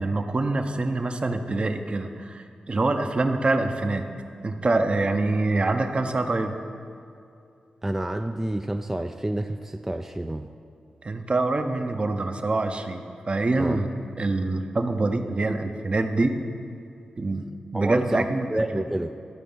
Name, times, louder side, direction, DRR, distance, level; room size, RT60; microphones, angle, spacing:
voice 1, 0.0-4.0 4.4-6.5 11.0-13.9 14.2-16.3 17.2-17.5 17.7-18.5 18.7-18.8, right 2 dB, 40° right, 6 dB, 0.8 m, -25 dB
voice 2, 7.8-10.5 13.6-13.8 17.7-19.1, right 1 dB, 15° right, 6 dB, 0.4 m, -29 dB
12.5 x 4.6 x 5.5 m, 2.6 s
cardioid pair, 55°, 3 cm